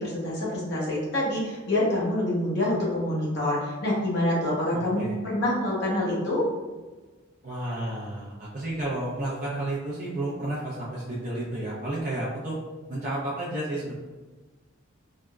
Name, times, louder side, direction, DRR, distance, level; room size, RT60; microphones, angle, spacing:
voice 1, 0.0-6.4, left 1 dB, 55° left, -5 dB, 0.9 m, -26 dB
voice 2, 4.7-5.2 7.4-12.6 12.9-13.9, right 1 dB, 45° right, -8 dB, 0.5 m, -31 dB
3.5 x 2.0 x 2.3 m, 1.3 s
head